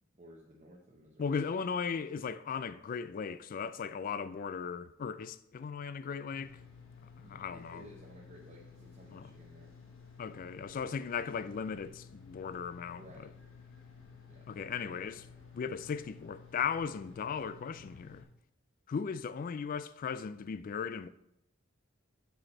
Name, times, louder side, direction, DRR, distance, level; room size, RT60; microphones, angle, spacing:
voice 1, 0.1-1.6 7.2-9.7 10.3-10.9 12.9-13.3 14.3-15.1, equal, 35° right, 0.8 m, -56 dB
voice 2, 1.2-6.6 7.3-7.8 9.1-9.3 10.2-13.3 14.5-15.2 15.5-18.2 18.9-21.1, left 6 dB, 45° left, 0.3 m, -37 dB
sound 1, 6.3-18.2, left 5 dB, 85° left, 1.2 m, -54 dB
7.8 x 5.2 x 4.2 m
head